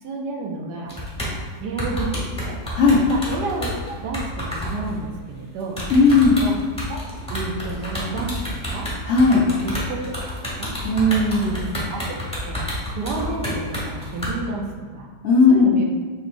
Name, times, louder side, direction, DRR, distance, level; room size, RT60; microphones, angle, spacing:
voice 1, 0.0-0.9 1.6-2.6 3.1-5.8 6.4-6.6 6.9-7.0 7.3-8.9 9.3-10.1 10.4-10.7 11.5-12.1 12.4-12.6 12.9-15.1 15.5-15.8, right 3 dB, 75° right, 0 dB, 1.2 m, -30 dB
sound 1, 0.9-1.4 1.8-5.0 5.7-14.3, left 1 dB, 5° left, 0.9 m, -29 dB
voice 2, 2.7-3.1 5.9-6.4 9.1-9.4 10.8-11.5 15.2-15.7, left 3 dB, 85° left, -4 dB, 0.6 m, -16 dB
5.2 x 3.0 x 2.5 m, 1.5 s
omnidirectional pair, 1.9 m